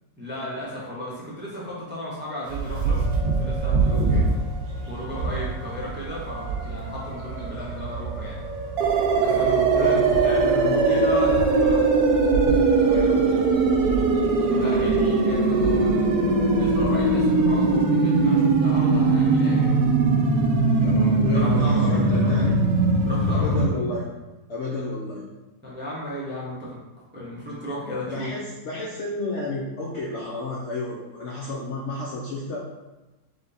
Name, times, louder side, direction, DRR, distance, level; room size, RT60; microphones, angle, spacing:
voice 1, 0.2-4.2 4.9-8.4 9.2-9.5 9.8-11.9 14.5-19.8 21.3-22.4 23.0-23.5 25.6-26.8 27.1-28.3, equal, 10° right, -6 dB, 0.6 m, -34 dB
sound 1, 2.5-17.8, right 3 dB, 60° right, 1.1 m, -29 dB
voice 2, 3.9-4.3 9.3-10.1 10.4-11.0 12.8-13.4 20.8-22.6 23.3-24.1 24.5-25.2 28.1-32.6, left 2 dB, 60° left, -5 dB, 0.7 m, -31 dB
sound 2, 8.8-23.7, right 3 dB, 80° right, 1.2 m, -20 dB
3.6 x 3.4 x 4.0 m, 1.1 s
omnidirectional pair, 1.8 m